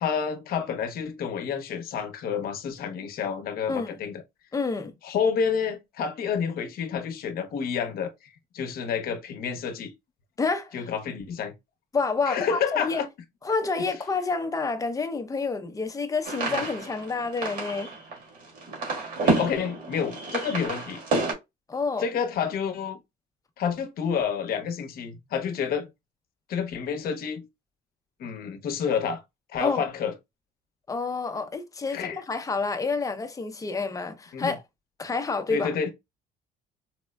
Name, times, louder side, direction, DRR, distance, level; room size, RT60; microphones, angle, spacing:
voice 1, 0.0-4.2 5.0-9.9 10.7-11.5 12.3-13.1 16.5-16.7 19.2-21.0 22.0-23.0 23.6-25.9 26.5-27.5 28.2-29.2 29.5-30.1 31.9-32.2 34.3-34.5 35.5-35.9, left 7 dB, 60° left, 0.7 m, -29 dB
voice 2, 4.5-4.9 10.4-10.9 11.9-13.0 13.4-17.9 21.7-22.1 29.6-29.9 30.9-34.6 35.0-35.7, left 4 dB, 20° left, 0.6 m, -28 dB
sound 1, 16.2-21.3, right 3 dB, 55° right, 1.7 m, -29 dB
4.2 x 2.0 x 2.2 m
cardioid pair, 110°, 17 cm